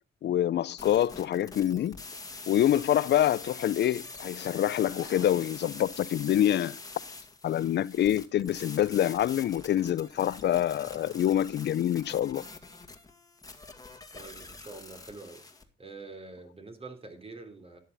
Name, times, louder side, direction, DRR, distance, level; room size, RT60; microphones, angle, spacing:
voice 1, 0.2-2.0 2.5-6.8 7.4-12.4, left 11 dB, 60° left, 0.6 m, -26 dB
sound 1, 0.8-15.6, left 3 dB, 20° left, 2.2 m, -45 dB
voice 2, 14.1-15.4 15.8-17.8, right 3 dB, 30° right, 3.6 m, -45 dB
13.0 x 10.5 x 4.1 m
cardioid pair, 90°, 20 cm